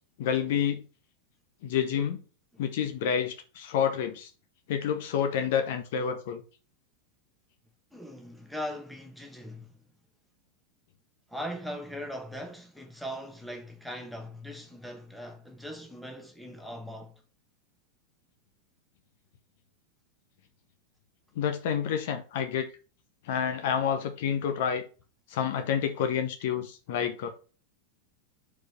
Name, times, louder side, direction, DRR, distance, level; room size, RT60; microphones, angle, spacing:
voice 1, 0.2-0.8 1.6-2.2 2.6-4.3 4.7-6.4 21.3-22.7 23.2-24.8 25.3-27.3, left 8 dB, 50° left, 1.0 m, -29 dB
voice 2, 7.9-9.8 11.3-17.1, equal, ahead, 1.5 m, -40 dB
4.8 x 4.8 x 5.7 m
figure-of-eight pair, 90°, 0 cm